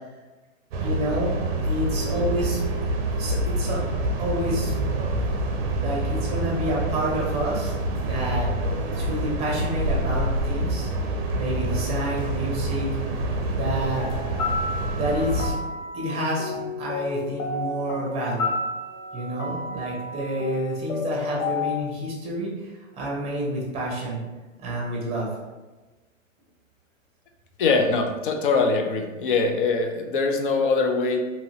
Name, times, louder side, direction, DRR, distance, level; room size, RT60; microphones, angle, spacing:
sound 1, 0.7-15.5, right 1 dB, 50° right, 0.6 m, -27 dB
voice 1, 0.8-2.6 3.2-3.8 4.2-4.8 5.8-7.7 8.0-8.5 8.8-10.9 11.3-12.9 13.5-14.1 14.9-15.6 15.9-18.6 19.1-24.2 24.6-25.3, right 1 dB, 15° right, -3 dB, 0.8 m, -29 dB
sound 2, 14.0-21.8, left 3 dB, 80° left, 0.7 m, -31 dB
voice 2, 27.6-31.2, left 4 dB, 45° left, 4 dB, 0.4 m, -22 dB
2.8 x 2.6 x 2.9 m, 1.2 s
hypercardioid pair, 130°, 40 cm